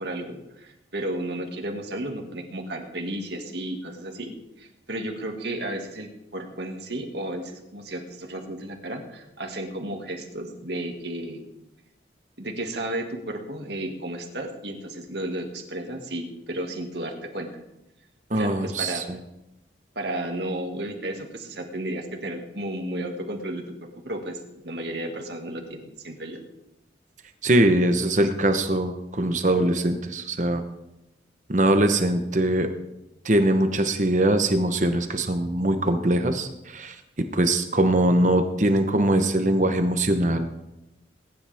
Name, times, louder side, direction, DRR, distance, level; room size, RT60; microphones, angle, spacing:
voice 1, 0.0-11.4 12.4-17.5 18.3-19.0 20.0-23.6 24.0-24.4 24.6-26.4, right 1 dB, 70° right, 2 dB, 2.2 m, -33 dB
voice 2, 18.3-19.2 27.4-30.6 31.5-32.7 33.2-36.9 37.3-40.5, right 1 dB, 40° right, 7 dB, 1.0 m, -22 dB
21.5 x 10.5 x 3.6 m, 0.90 s
head